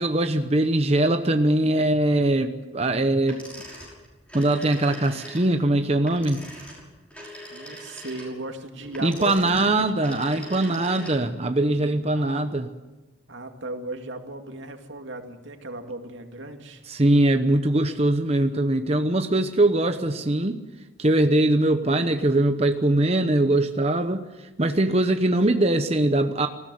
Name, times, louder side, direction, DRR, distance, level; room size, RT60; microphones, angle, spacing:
voice 1, 0.0-3.4 4.3-6.4 9.0-12.7 16.9-20.6 21.0-26.5, right 1 dB, 35° right, 6 dB, 0.9 m, -22 dB
sound 1, 3.3-11.4, equal, 5° left, 5.8 m, -42 dB
voice 2, 7.5-9.9 12.1-12.4 13.3-16.8, right 2 dB, 80° right, 5 dB, 2.3 m, -36 dB
19.5 x 16.0 x 9.5 m, 1.1 s
head